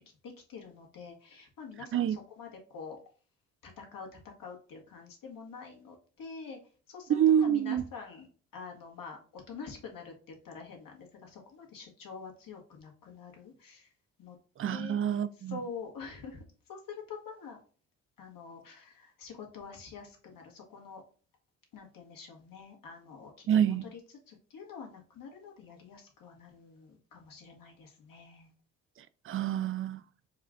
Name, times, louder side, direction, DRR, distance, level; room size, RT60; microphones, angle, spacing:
voice 1, 0.2-3.0 3.6-6.6 6.9-8.3 8.5-13.9 14.2-14.4 14.7-14.9 15.5-16.4 16.7-17.6 18.2-21.0 21.7-24.0 24.3-28.5, left 5 dB, 60° left, 1.6 m, -46 dB
voice 2, 7.1-7.8 14.6-15.6 23.5-23.8 29.2-30.0, right 9 dB, 35° right, 0.5 m, -27 dB
4.7 x 2.4 x 3.5 m
hypercardioid pair, 50°, 38 cm